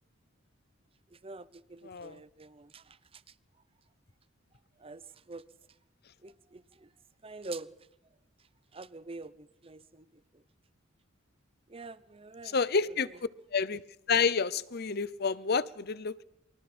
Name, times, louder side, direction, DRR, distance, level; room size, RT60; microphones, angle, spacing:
voice 1, 1.2-2.8 4.8-5.0 5.3-5.4 6.2-6.9 7.2-7.7 8.7-10.1 11.7-12.5, right 3 dB, 25° right, 0.7 m, -45 dB
voice 2, 1.8-2.2 12.5-13.1 13.5-13.8 14.1-16.2, left 5 dB, 50° left, 0.7 m, -29 dB
29.5 x 24.0 x 4.4 m
head